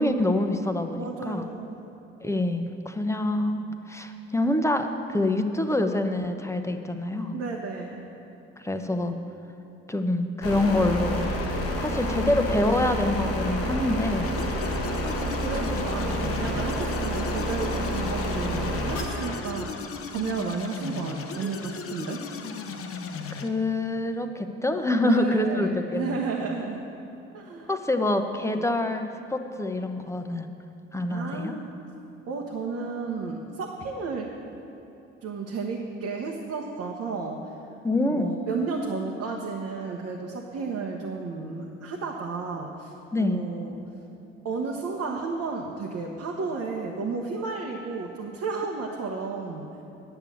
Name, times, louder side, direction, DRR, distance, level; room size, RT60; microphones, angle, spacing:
voice 1, 0.0-1.4 2.2-7.4 8.6-9.2 9.9-11.2 11.8-14.3 23.3-26.2 27.7-30.5 30.9-31.6 37.8-38.3 43.1-43.4, left 2 dB, 10° left, 6 dB, 0.9 m, -26 dB
voice 2, 1.0-1.9 7.3-8.0 11.9-12.6 15.2-19.8 20.1-22.2 25.0-26.8 27.3-27.7 28.4-28.7 31.1-31.8 32.3-34.3 35.2-37.5 38.1-42.9 43.2-43.8 44.4-49.7, right 4 dB, 60° right, -1 dB, 1.1 m, -33 dB
sound 1, 10.4-19.4, equal, 90° left, 1.4 m, -29 dB
sound 2, 14.2-23.5, left 5 dB, 50° left, 0.9 m, -37 dB
10.0 x 6.9 x 7.2 m, 2.9 s
hypercardioid pair, 50°, 29 cm